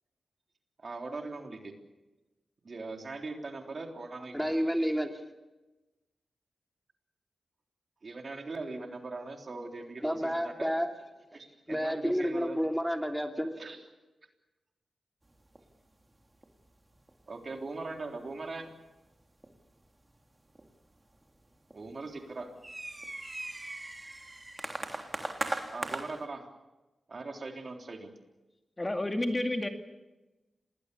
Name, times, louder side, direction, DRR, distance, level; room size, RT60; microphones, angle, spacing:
voice 1, 0.8-1.7 2.6-4.6 8.0-10.7 11.3-12.6 13.6-13.8 17.3-18.7 21.7-22.6 25.7-26.5 27.1-28.1, right 3 dB, 50° right, 3 dB, 3.6 m, -40 dB
voice 2, 4.3-5.1 10.0-10.9 11.7-13.6, equal, ahead, 4 dB, 3.0 m, -30 dB
sound 1, 15.3-15.7 16.0-16.2 16.4-16.7 16.9-17.3 17.6-18.1 18.7-18.8 19.4-19.8 20.6-21.4 21.7-26.2, right 1 dB, 20° right, 3.3 m, -39 dB
voice 3, 28.8-29.7, left 1 dB, 25° left, 5 dB, 2.2 m, -30 dB
27.5 x 20.0 x 7.0 m, 1.1 s
cardioid pair, 65°, 0 cm